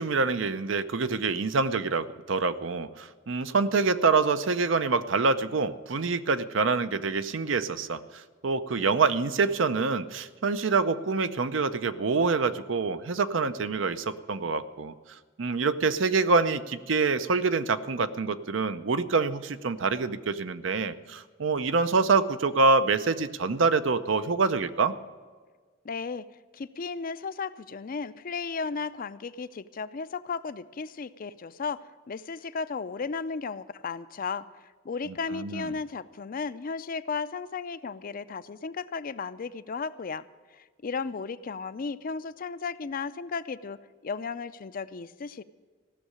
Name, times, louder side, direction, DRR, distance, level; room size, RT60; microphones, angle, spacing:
voice 1, 0.0-14.9 15.4-24.9 35.1-35.7, right 4 dB, 75° right, 12 dB, 0.7 m, -26 dB
voice 2, 25.8-26.2 26.5-34.4 34.8-40.2 40.5-45.4, left 5 dB, 45° left, 14 dB, 0.5 m, -35 dB
15.5 x 6.5 x 9.7 m, 1.5 s
head